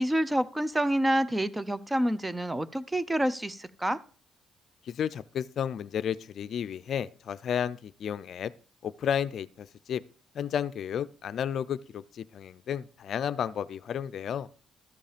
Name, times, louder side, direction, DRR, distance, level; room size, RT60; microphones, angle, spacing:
voice 1, 0.0-4.0, right 1 dB, 10° right, 0.6 m, -28 dB
voice 2, 4.9-8.5 8.8-10.0 10.3-14.5, left 8 dB, 65° left, 0.4 m, -32 dB
13.0 x 5.3 x 5.1 m
cardioid pair, 90°, 0 cm